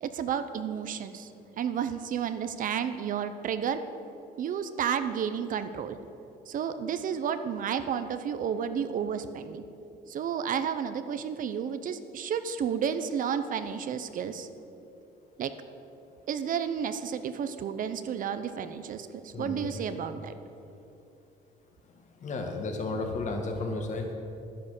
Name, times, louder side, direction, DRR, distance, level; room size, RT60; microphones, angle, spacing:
voice 1, 0.0-1.3 1.6-3.8 4.4-6.0 6.5-9.6 10.1-14.5 15.4-15.5 16.3-20.3, right 8 dB, 55° right, 10 dB, 0.7 m, -31 dB
voice 2, 19.3-19.7 22.2-24.1, left 3 dB, 45° left, 3 dB, 1.9 m, -33 dB
11.0 x 9.9 x 6.6 m, 2.8 s
cardioid pair, 110°, 17 cm